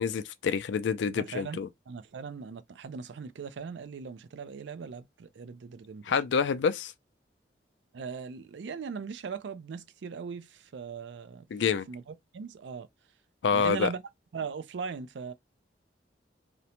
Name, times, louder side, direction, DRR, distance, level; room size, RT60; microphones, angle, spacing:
voice 1, 0.0-1.7 6.1-6.9 11.5-11.9 13.4-13.9, left 6 dB, 85° left, 0.4 m, -27 dB
voice 2, 1.1-1.6 1.9-6.0 7.9-12.9 13.5-14.0 14.3-15.3, right 5 dB, 85° right, 0.4 m, -39 dB
2.5 x 2.1 x 2.8 m
head